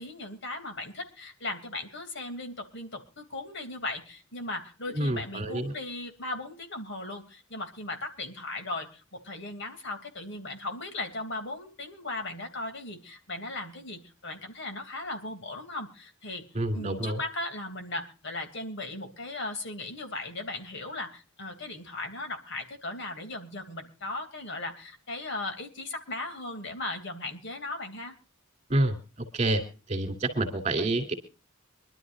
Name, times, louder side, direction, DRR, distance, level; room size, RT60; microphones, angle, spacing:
voice 1, 0.0-16.4 16.7-28.1, left 2 dB, 60° left, 6 dB, 3.0 m, -37 dB
voice 2, 4.9-5.7 16.5-17.2 28.7-28.9 29.3-29.6 29.9-31.1, right 2 dB, 35° right, 3 dB, 3.1 m, -27 dB
25.0 x 12.0 x 2.6 m, 0.33 s
head